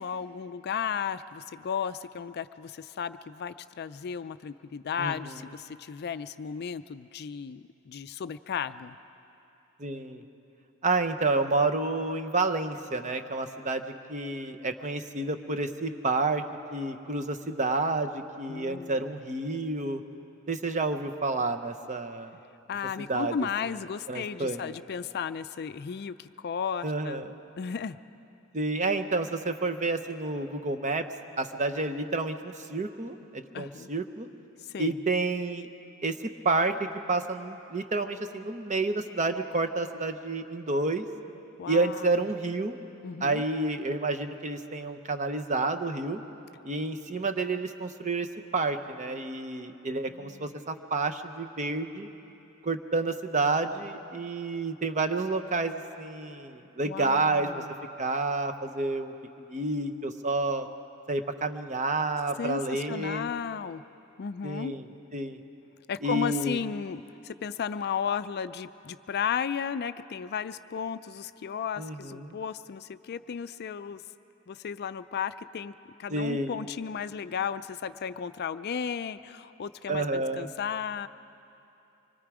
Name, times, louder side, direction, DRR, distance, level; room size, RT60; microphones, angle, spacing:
voice 1, 0.0-8.9 18.5-19.1 22.7-27.2 27.6-28.0 33.5-33.9 34.7-35.0 41.6-42.2 43.0-43.4 50.1-50.5 56.8-57.7 62.4-63.8 64.2-64.7 65.9-74.0 74.5-75.7 76.0-81.1, left 7 dB, 45° left, 13 dB, 0.4 m, -34 dB
voice 2, 5.0-5.4 9.8-10.2 10.8-16.4 16.7-20.0 20.5-22.3 23.1-23.5 24.1-24.7 26.8-27.3 28.5-31.0 31.4-34.3 34.8-35.7 36.0-36.2 36.4-41.1 41.7-42.8 43.2-46.2 46.6-48.3 48.5-52.1 52.6-57.6 58.0-59.1 59.5-60.7 61.1-63.3 64.4-64.8 65.1-65.4 66.0-66.6 71.8-72.4 76.1-76.5 79.9-80.5, right 3 dB, 35° right, 8 dB, 0.8 m, -29 dB
25.0 x 22.0 x 4.9 m, 2.8 s
head